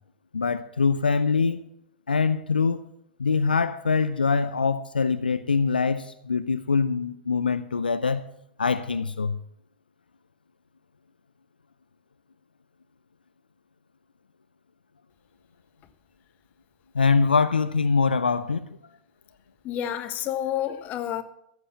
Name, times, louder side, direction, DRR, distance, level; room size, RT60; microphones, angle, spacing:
voice 1, 0.3-1.6 2.1-2.8 3.2-8.3 8.6-9.4 16.9-18.8, left 5 dB, 85° left, 0.5 m, -23 dB
voice 2, 19.6-21.2, left 11 dB, 35° left, 1.3 m, -29 dB
15.0 x 8.0 x 7.2 m
figure-of-eight pair, 90°, 5 cm